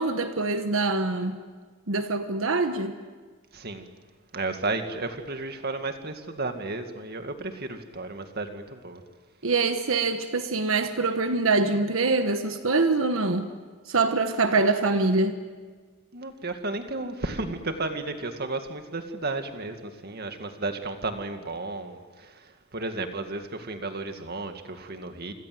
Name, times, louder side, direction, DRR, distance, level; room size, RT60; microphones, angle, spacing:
voice 1, 0.0-1.4 1.9-2.9 9.4-13.5 13.9-15.4, right 3 dB, 75° right, 1.3 m, -24 dB
voice 2, 3.5-3.9 4.3-9.0 16.1-25.3, right 2 dB, 50° right, 2.1 m, -33 dB
28.5 x 26.0 x 7.8 m
head